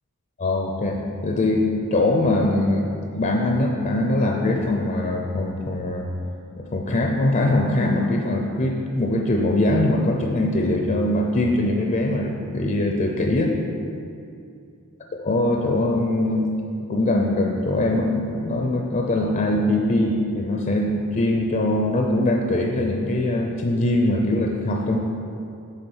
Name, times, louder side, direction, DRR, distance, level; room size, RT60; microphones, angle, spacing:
voice 1, 0.4-6.1 6.6-13.6 15.2-16.5 16.8-25.0, left 1 dB, 35° left, 1 dB, 0.6 m, -22 dB
9.9 x 3.6 x 7.2 m, 2.5 s
head